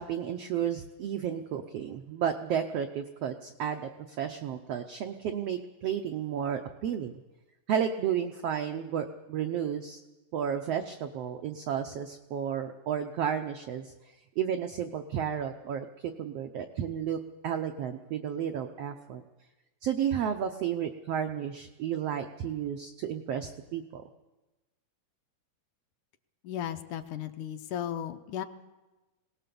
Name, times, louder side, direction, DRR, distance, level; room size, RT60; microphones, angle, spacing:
voice 1, 0.0-7.1 7.7-10.0 10.3-13.9 14.4-15.9 16.2-17.2 17.4-19.2 19.8-24.0, right 8 dB, 85° right, 6 dB, 1.3 m, -32 dB
voice 2, 26.4-28.4, left 10 dB, 75° left, 7 dB, 2.2 m, -35 dB
21.5 x 18.5 x 6.9 m, 1.1 s
omnidirectional pair, 3.9 m